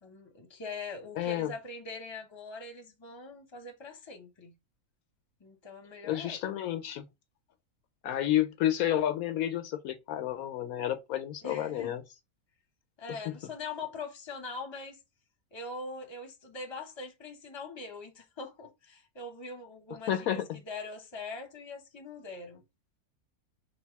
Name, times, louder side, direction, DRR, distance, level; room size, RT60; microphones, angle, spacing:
voice 1, 0.0-4.5 5.4-6.4 11.4-12.0 13.0-15.0 15.5-20.3 20.7-22.6, left 3 dB, 20° left, 0.9 m, -42 dB
voice 2, 1.2-1.5 6.0-7.1 8.0-12.0 13.1-13.4 20.1-20.6, left 12 dB, 75° left, 1.0 m, -30 dB
3.4 x 2.6 x 4.5 m
omnidirectional pair, 1.6 m